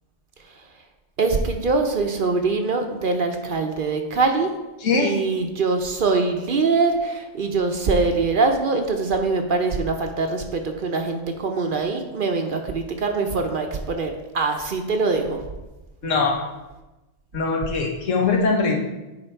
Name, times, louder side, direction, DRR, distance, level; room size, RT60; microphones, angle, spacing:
voice 1, 1.2-4.5 5.0-15.4, right 3 dB, 50° right, 4 dB, 0.7 m, -23 dB
voice 2, 4.8-5.2 16.0-16.5 17.3-18.7, left 4 dB, 85° left, 1 dB, 1.4 m, -22 dB
9.8 x 3.6 x 4.5 m, 1.1 s
omnidirectional pair, 1.3 m